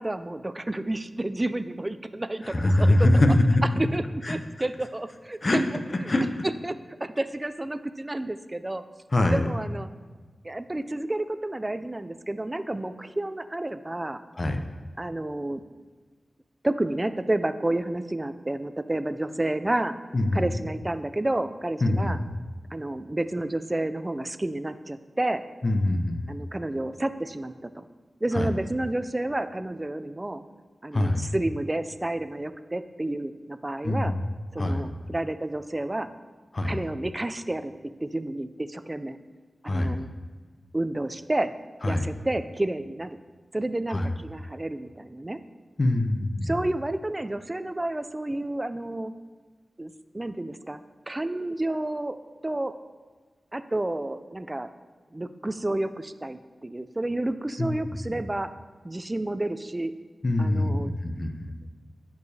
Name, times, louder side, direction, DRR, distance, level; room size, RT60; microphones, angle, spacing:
voice 1, 0.0-3.0 3.8-6.1 6.6-8.8 9.3-9.9 10.4-14.2 15.0-15.6 16.6-20.0 20.3-22.2 22.7-25.4 26.3-27.8 28.2-30.4 30.8-34.1 34.5-36.1 36.6-39.2 39.6-40.1 40.7-41.5 41.9-43.2 43.5-45.4 46.4-49.1 49.8-50.8 51.1-52.2 52.4-52.8 53.5-54.7 55.1-58.5 58.8-59.9 60.4-60.9, right 1 dB, 25° right, 12 dB, 0.3 m, -30 dB
voice 2, 2.4-3.6 4.2-4.4 5.4-5.6 5.9-6.2 9.1-9.4 14.4-14.6 20.1-20.4 21.8-22.2 25.6-26.4 28.3-28.5 30.9-31.3 33.8-34.2 34.6-34.9 36.5-36.8 39.6-40.0 41.8-42.0 43.9-44.1 45.8-46.5 57.6-57.7 60.2-61.5, left 1 dB, 45° left, 6 dB, 0.6 m, -23 dB
9.8 x 4.7 x 2.7 m, 1.4 s
wide cardioid pair, 65°, 0 cm